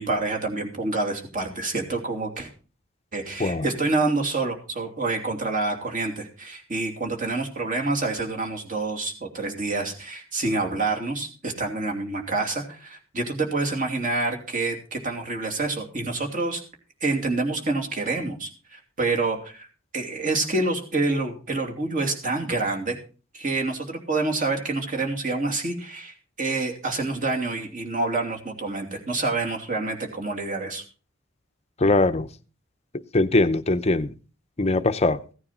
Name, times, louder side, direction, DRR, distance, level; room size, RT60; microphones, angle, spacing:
voice 1, 0.0-2.5 3.1-16.6 17.0-19.7 19.9-23.0 23.3-30.8, right 3 dB, 40° right, 2.8 m, -27 dB
voice 2, 31.8-32.3 33.1-34.1 34.6-35.2, left 2 dB, 30° left, 0.7 m, -21 dB
16.0 x 9.6 x 4.3 m
head